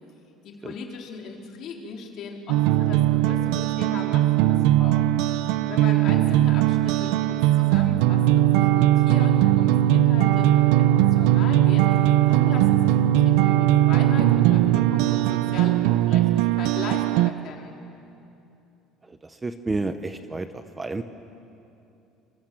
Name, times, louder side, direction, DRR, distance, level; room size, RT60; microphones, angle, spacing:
voice 1, 0.4-5.0 5.7-17.8, left 5 dB, 45° left, 0 dB, 3.7 m, -38 dB
sound 1, 2.5-17.3, right 13 dB, 85° right, 0.7 m, -19 dB
voice 2, 19.0-21.0, right 3 dB, 15° right, 9 dB, 0.7 m, -31 dB
27.0 x 24.0 x 7.6 m, 2.8 s
cardioid pair, 165°, 0 cm